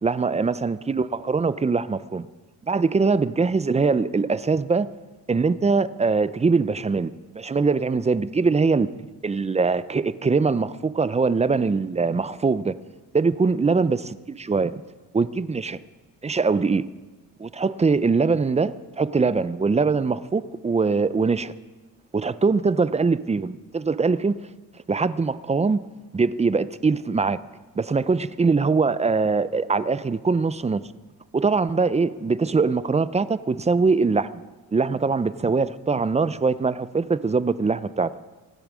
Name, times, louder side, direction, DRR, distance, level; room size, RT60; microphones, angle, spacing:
voice 1, 0.0-2.3 2.6-4.9 5.3-8.9 9.2-12.7 13.1-14.8 15.1-15.8 16.2-16.8 17.4-21.5 22.1-24.4 24.9-25.8 26.1-27.4 27.8-30.8 31.3-34.4 34.7-38.1, right 4 dB, 20° right, 0.5 m, -22 dB
25.0 x 8.6 x 6.2 m
cardioid pair, 115°, 35 cm